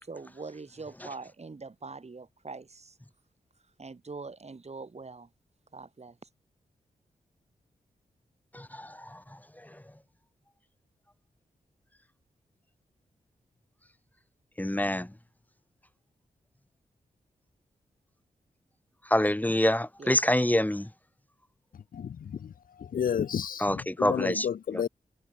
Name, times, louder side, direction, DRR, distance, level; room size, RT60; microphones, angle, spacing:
voice 1, 0.0-3.0 3.8-5.3 5.7-6.2 20.0-20.2, right 4 dB, 45° right, 3.1 m, -43 dB
voice 2, 8.5-9.2 9.7-9.8 14.6-15.1 19.1-20.9 23.6-24.5, left 1 dB, 10° left, 1.9 m, -26 dB
voice 3, 21.7-24.9, left 8 dB, 70° left, 0.6 m, -32 dB
cardioid pair, 45°, 15 cm